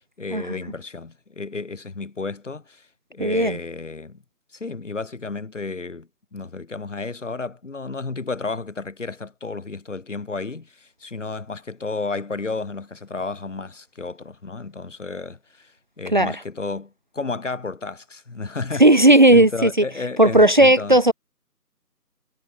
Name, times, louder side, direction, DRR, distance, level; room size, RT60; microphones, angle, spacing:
voice 1, 0.2-4.2 4.5-18.9 19.3-21.0, left 3 dB, 50° left, 3.8 m, -32 dB
voice 2, 3.2-3.6 16.1-16.3 18.8-19.7 20.2-21.1, right 1 dB, 30° right, 1.1 m, -14 dB
figure-of-eight pair, 170°, 47 cm